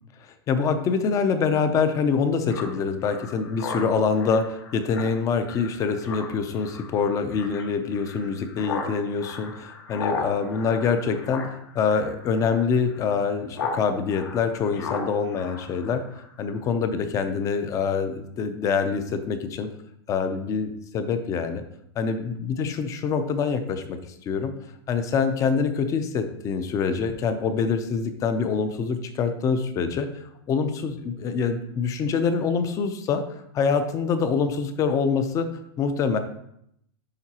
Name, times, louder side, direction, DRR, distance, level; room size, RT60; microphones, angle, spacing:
voice 1, 0.5-11.5 11.7-16.0 16.4-19.7 20.1-21.6 22.0-24.0 24.2-24.5 24.9-35.5 35.8-36.2, left 5 dB, 25° left, 9 dB, 0.6 m, -25 dB
Speech synthesizer, 2.5-13.8 14.1-16.3, left 4 dB, 70° left, 1.6 m, -36 dB
11.0 x 3.8 x 2.9 m, 0.74 s
supercardioid pair, 150°, 14 cm